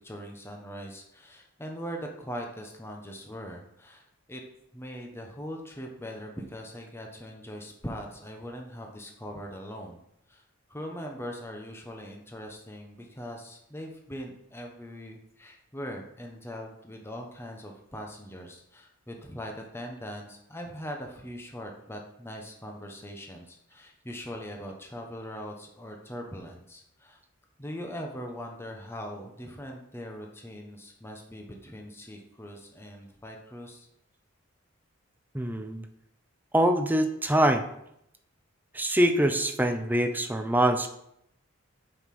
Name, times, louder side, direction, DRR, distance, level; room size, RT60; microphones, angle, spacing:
voice 1, 0.0-4.4 4.7-10.0 10.3-10.4 10.7-27.2 27.6-33.9, equal, 10° left, 2 dB, 1.1 m, -41 dB
voice 2, 35.3-35.9 36.5-37.6 38.7-40.9, right 1 dB, 10° right, 6 dB, 0.7 m, -24 dB
8.0 x 5.8 x 6.0 m, 0.77 s
head